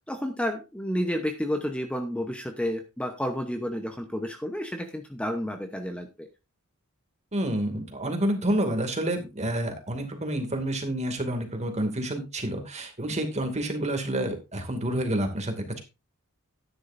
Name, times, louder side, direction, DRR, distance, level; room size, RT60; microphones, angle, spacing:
voice 1, 0.1-6.3, equal, 5° left, 5 dB, 0.9 m, -31 dB
voice 2, 7.3-15.8, right 1 dB, 30° right, 5 dB, 2.4 m, -29 dB
12.5 x 10.0 x 2.6 m, 0.27 s
head